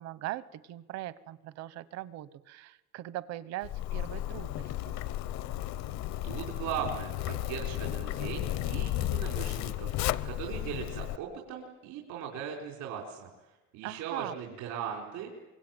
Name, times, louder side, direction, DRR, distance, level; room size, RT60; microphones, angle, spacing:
voice 1, 0.0-5.0 13.8-14.4, right 14 dB, 65° right, 16 dB, 1.0 m, -40 dB
Zipper (clothing), 3.6-11.2, left 14 dB, 70° left, 0.8 m, -34 dB
voice 2, 6.2-9.9 10.2-15.3, right 8 dB, 85° right, -1 dB, 4.4 m, -39 dB
25.0 x 22.5 x 9.1 m, 1.1 s
cardioid pair, 170°, 29 cm